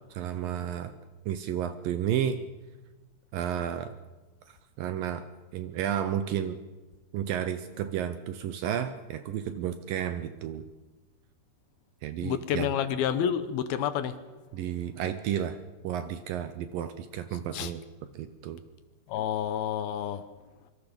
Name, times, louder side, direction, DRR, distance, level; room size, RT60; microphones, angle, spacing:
voice 1, 0.1-0.9 1.3-2.4 3.3-3.9 4.5-5.3 5.5-6.6 7.1-10.7 12.0-12.7 14.5-15.6 15.8-17.8 18.1-18.6, right 10 dB, 75° right, 10 dB, 2.2 m, -32 dB
voice 2, 12.2-14.2 17.5-17.7 19.1-20.2, left 9 dB, 75° left, 12 dB, 2.6 m, -29 dB
25.5 x 24.5 x 5.3 m, 1.2 s
omnidirectional pair, 4.7 m